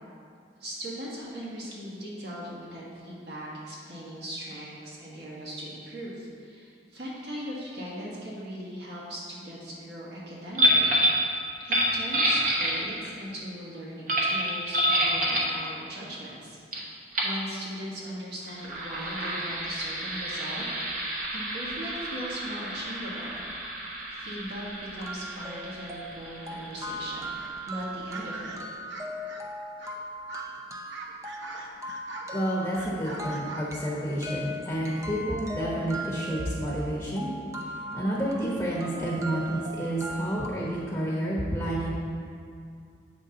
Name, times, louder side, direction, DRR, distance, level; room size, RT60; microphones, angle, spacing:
voice 1, 0.6-11.3 11.6-20.7 20.9-21.1 21.3-23.4 24.1-24.7 24.9-27.4 27.7-28.6, equal, 65° right, -6 dB, 1.7 m, -39 dB
sound 1, 10.5-11.2 11.6-13.1 14.1-15.5 16.7-16.8 17.1-17.4 18.4-27.7, equal, 45° right, 1.1 m, -28 dB
sound 2, 24.0-24.1 24.5-24.6 25.0-40.5, right 1 dB, 15° right, 0.5 m, -39 dB
sound 3, 27.3-27.6 28.1-29.4 29.8-30.0 30.3-30.5 30.9-32.3 32.7-34.3, right 1 dB, 90° right, 0.8 m, -42 dB
voice 2, 32.3-37.3 37.9-41.9, right 1 dB, 10° left, -6 dB, 1.0 m, -29 dB
8.0 x 5.8 x 3.8 m, 2.3 s
head